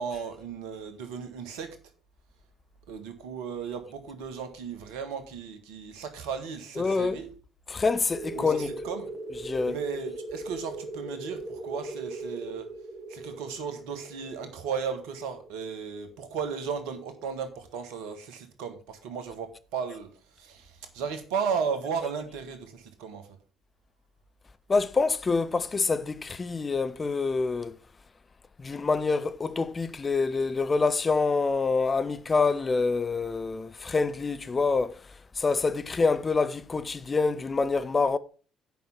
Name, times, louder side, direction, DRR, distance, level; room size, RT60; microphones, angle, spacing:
voice 1, 0.0-1.8 2.9-7.3 8.3-9.1 9.6-12.7 13.1-20.1 20.3-23.3, right 6 dB, 65° right, 1.5 m, -35 dB
voice 2, 6.8-7.2 7.7-8.7 9.4-9.8 24.7-27.7 28.6-35.0 35.4-38.2, left 4 dB, 30° left, 0.7 m, -26 dB
sound 1, 8.1-16.5, right 2 dB, 40° right, 1.5 m, -39 dB
9.2 x 5.5 x 5.9 m
figure-of-eight pair, 50°, 0 cm